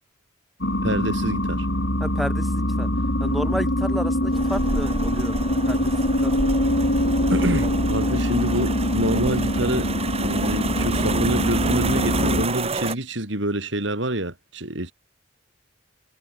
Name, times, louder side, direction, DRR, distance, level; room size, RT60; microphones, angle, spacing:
sound 1, 0.6-12.5, left 1 dB, 65° left, 4.6 m, -23 dB
voice 1, 0.8-1.7 7.3-9.9 10.2-14.9, right 1 dB, 70° right, 4.5 m, -26 dB
voice 2, 2.0-2.9 3.2-5.4 5.7-5.9 6.2-6.3, equal, ahead, 6.1 m, -31 dB
sound 2, 4.3-12.9, right 3 dB, 30° right, 1.6 m, -29 dB
head